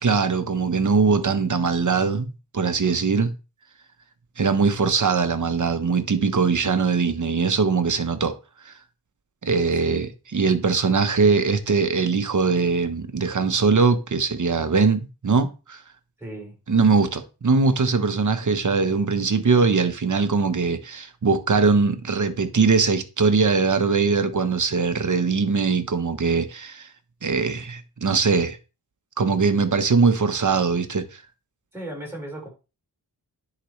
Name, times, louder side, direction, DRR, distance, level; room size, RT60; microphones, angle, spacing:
voice 1, 0.0-3.3 4.4-8.3 8.7-8.8 9.4-15.8 16.7-26.9 27.2-28.6 29.2-31.2, right 4 dB, 50° right, 1.1 m, -21 dB
voice 2, 16.2-16.6 31.7-32.5, right 1 dB, 5° right, 4.9 m, -36 dB
10.0 x 5.0 x 3.2 m
cardioid pair, 70°, 39 cm